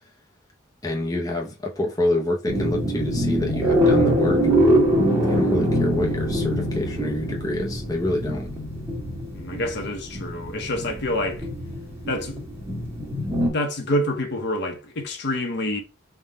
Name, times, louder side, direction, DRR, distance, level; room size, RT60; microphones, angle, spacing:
voice 1, 0.8-4.5 5.2-8.5, left 1 dB, 15° left, 0.6 m, -27 dB
sound 1, 2.5-13.5, equal, 15° right, 1.2 m, -23 dB
voice 2, 9.3-11.5 12.1-12.4 13.4-15.8, left 1 dB, 55° left, 0.8 m, -27 dB
3.6 x 2.2 x 3.9 m
head